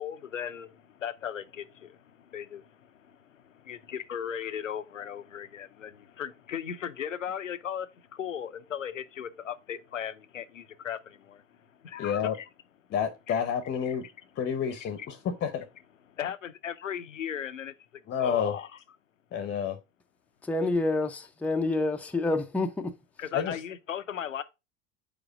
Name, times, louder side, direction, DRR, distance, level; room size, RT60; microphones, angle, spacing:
voice 1, 0.0-12.5 13.3-13.4 14.0-14.1 14.8-15.1 16.1-18.7 23.2-24.4, left 9 dB, 85° left, 0.6 m, -37 dB
voice 2, 12.0-12.3 12.9-14.0 14.4-15.7 18.1-18.5 19.3-19.8 23.3-23.6, left 8 dB, 30° left, 0.8 m, -29 dB
voice 3, 20.4-22.9, left 2 dB, 5° left, 0.6 m, -28 dB
4.9 x 4.6 x 4.7 m
figure-of-eight pair, 70°, 37 cm